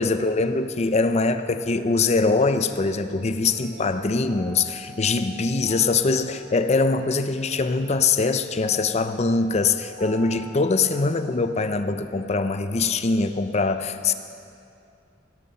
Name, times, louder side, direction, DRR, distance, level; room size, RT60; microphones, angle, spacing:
voice 1, 0.0-14.1, left 3 dB, 35° left, 10 dB, 0.5 m, -23 dB
sound 1, 3.4-13.4, left 1 dB, 30° right, 3.5 m, -46 dB
16.5 x 12.5 x 4.2 m, 2.5 s
head